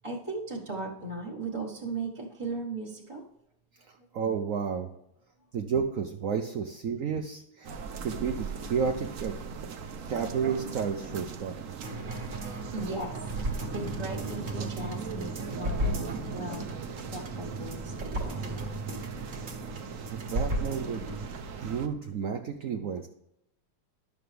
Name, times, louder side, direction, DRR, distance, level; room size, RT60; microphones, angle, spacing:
voice 1, 0.0-3.2 4.0-4.1 10.9-11.0 12.4-13.2 13.5-18.8, right 2 dB, 15° right, -5 dB, 1.2 m, -38 dB
voice 2, 3.9-4.9 5.5-7.7 8.0-9.3 10.1-11.8 20.1-21.0 21.4-23.1, right 6 dB, 85° right, 4 dB, 0.7 m, -31 dB
sound 1, 7.6-21.9, right 5 dB, 60° right, 0.9 m, -40 dB
sound 2, 11.8-21.3 21.6-21.7, right 1 dB, 40° right, 1.7 m, -35 dB
11.0 x 6.9 x 3.3 m, 0.79 s
omnidirectional pair, 2.2 m